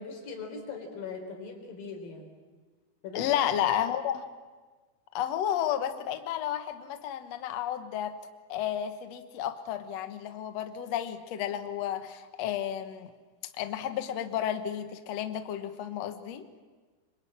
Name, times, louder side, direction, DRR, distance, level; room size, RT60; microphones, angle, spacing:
voice 1, 0.0-2.3 3.0-3.4, left 4 dB, 60° left, 4 dB, 5.4 m, -40 dB
voice 2, 3.1-4.2 5.1-8.1 8.5-13.1 13.6-16.5, left 10 dB, 75° left, 8 dB, 1.5 m, -32 dB
26.0 x 24.0 x 8.8 m, 1.4 s
omnidirectional pair, 4.8 m